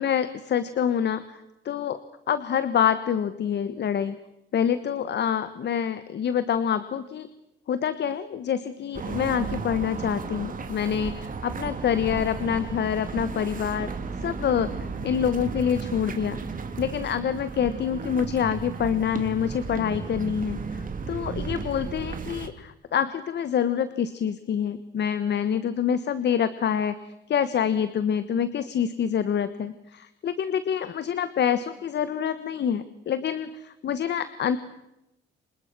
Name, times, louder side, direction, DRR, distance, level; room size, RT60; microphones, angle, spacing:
voice 1, 0.0-2.0 2.3-4.1 4.5-7.3 7.7-13.9 14.2-16.4 16.8-34.6, left 8 dB, 60° left, 13 dB, 1.4 m, -26 dB
sound 1, 8.9-22.5, right 4 dB, 45° right, 3.0 m, -34 dB
29.0 x 25.5 x 6.2 m, 0.88 s
cardioid pair, 90°, 20 cm